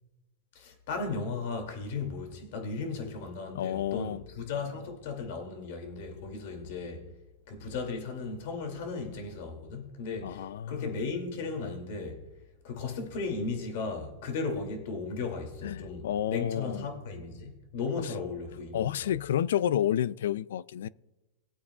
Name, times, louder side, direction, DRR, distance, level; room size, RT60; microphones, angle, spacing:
voice 1, 0.5-7.0 7.5-12.2 12.6-19.1, left 4 dB, 60° left, 2.5 m, -36 dB
voice 2, 3.5-4.2 10.2-10.9 15.6-16.9 18.7-20.9, left 10 dB, 80° left, 0.4 m, -30 dB
20.0 x 8.5 x 2.4 m
supercardioid pair, 145°, 0 cm